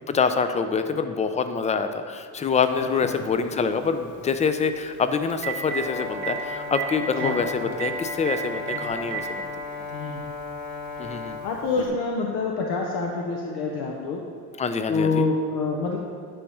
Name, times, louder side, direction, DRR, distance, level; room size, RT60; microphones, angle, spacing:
voice 1, 0.1-9.5 11.0-11.4 14.6-15.2, left 5 dB, 20° left, 9 dB, 0.3 m, -25 dB
Telephone, 2.6-2.7 4.9-5.0 5.3-5.8 6.2-6.3 6.7-6.9 7.1-7.3 7.8-7.9 8.3-8.4 8.7-9.2 10.2-10.3 11.8-11.9, right 12 dB, 65° right, 1.0 m, -30 dB
voice 2, 2.8-3.2 7.2-7.8 8.7-8.9 9.9-10.2 11.4-14.2 14.9-16.0, left 4 dB, 75° left, 0 dB, 0.8 m, -27 dB
Brass instrument, 5.6-11.5, left 3 dB, 45° left, 1.5 m, -35 dB
9.9 x 3.5 x 5.4 m, 2.3 s
cardioid pair, 115°, 39 cm